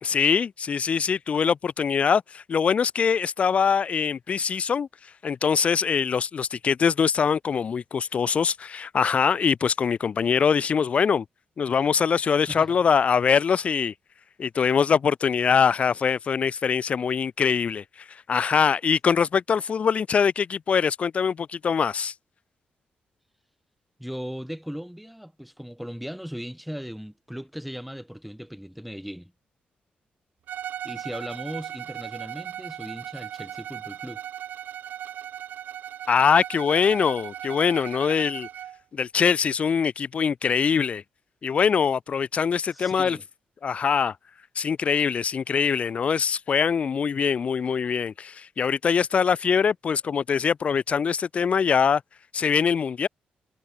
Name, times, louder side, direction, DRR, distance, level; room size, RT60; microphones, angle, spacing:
voice 1, 0.0-4.9 5.2-11.2 11.6-13.9 14.4-22.1 36.1-38.5 38.9-41.0 41.4-43.2 43.6-44.2 44.6-52.0 52.3-53.1, left 6 dB, 45° left, 0.4 m, -23 dB
voice 2, 12.5-12.8 24.0-29.3 30.8-34.2 42.7-43.2, equal, ahead, 1.9 m, -37 dB
Bowed string instrument, 30.5-38.8, right 10 dB, 80° right, 0.5 m, -37 dB
wide cardioid pair, 130°, 3 cm